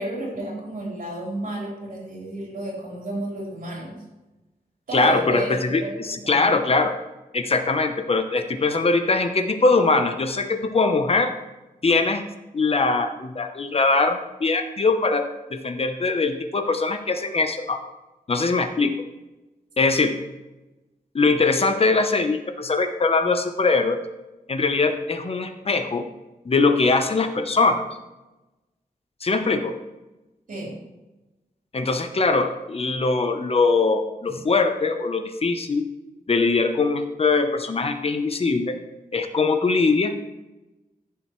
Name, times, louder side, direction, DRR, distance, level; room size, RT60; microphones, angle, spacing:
voice 1, 0.0-4.0 4.9-6.4 29.4-29.5 30.5-30.7 34.3-34.4, right 1 dB, 65° right, -3 dB, 4.0 m, -32 dB
voice 2, 4.9-6.9 7.3-11.3 11.8-12.2 12.5-15.2 15.5-17.8 18.3-18.9 19.8-20.1 21.1-24.0 24.5-26.0 26.5-27.8 29.2-29.7 31.7-35.8 36.3-38.7 39.1-40.3, left 3 dB, 40° left, 7 dB, 0.8 m, -21 dB
14.5 x 7.1 x 3.2 m, 1.0 s
wide cardioid pair, 140°, 15 cm